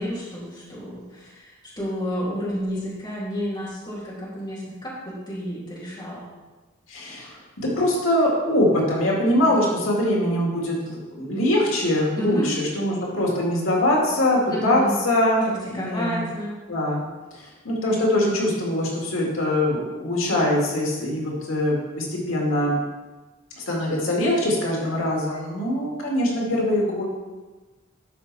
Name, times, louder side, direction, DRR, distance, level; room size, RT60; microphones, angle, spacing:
voice 1, 0.0-6.2 9.4-9.6 12.1-12.5 14.5-14.9 15.7-16.6, equal, 20° left, -7 dB, 2.7 m, -30 dB
voice 2, 6.9-15.4 15.7-16.2 16.7-17.0 17.4-22.8 23.6-27.0, left 1 dB, 85° left, -2 dB, 2.1 m, -23 dB
12.0 x 5.2 x 4.1 m, 1.2 s
head